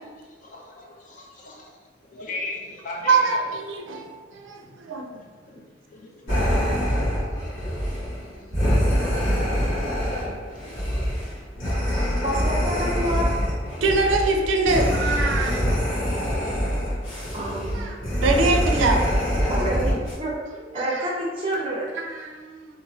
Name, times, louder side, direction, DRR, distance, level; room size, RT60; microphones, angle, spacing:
voice 1, 0.4-1.7 2.1-4.1 4.6-4.8 5.1-6.4 6.7-7.0, left 2 dB, 45° left, -2 dB, 0.5 m, -38 dB
voice 2, 3.1-5.1 13.8-16.3 17.7-18.0 18.2-19.0 20.8-21.0 22.0-22.7, right 3 dB, 80° right, 3 dB, 0.4 m, -24 dB
sound 1, 6.3-20.1, equal, 90° left, 1.1 m, -24 dB
voice 3, 12.2-13.3 17.3-17.9 19.5-20.3 20.7-21.8, right 1 dB, 30° right, -3 dB, 0.6 m, -28 dB
2.9 x 2.5 x 2.6 m, 1.4 s
head